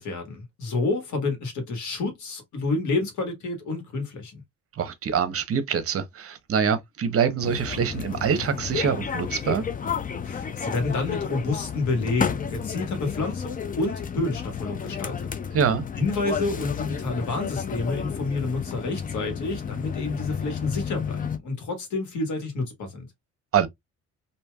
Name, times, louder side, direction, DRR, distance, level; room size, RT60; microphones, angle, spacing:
voice 1, 0.0-4.4 10.2-15.3 16.0-23.1, left 3 dB, 75° left, 1.5 m, -29 dB
voice 2, 4.8-9.6 15.5-15.8 23.5-23.7, right 7 dB, 50° right, 0.8 m, -25 dB
sound 1, 7.4-21.4, left 7 dB, 30° left, 0.5 m, -31 dB
3.2 x 2.7 x 2.2 m
cardioid pair, 90°, 30 cm